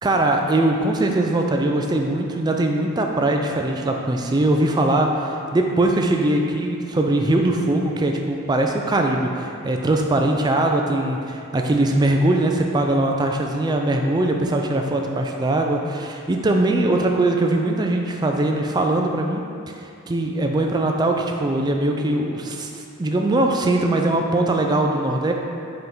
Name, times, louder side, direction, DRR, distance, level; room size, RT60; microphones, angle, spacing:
voice 1, 0.0-19.4 19.7-25.3, right 2 dB, 20° right, 2 dB, 0.3 m, -21 dB
5.4 x 4.5 x 3.9 m, 2.5 s
head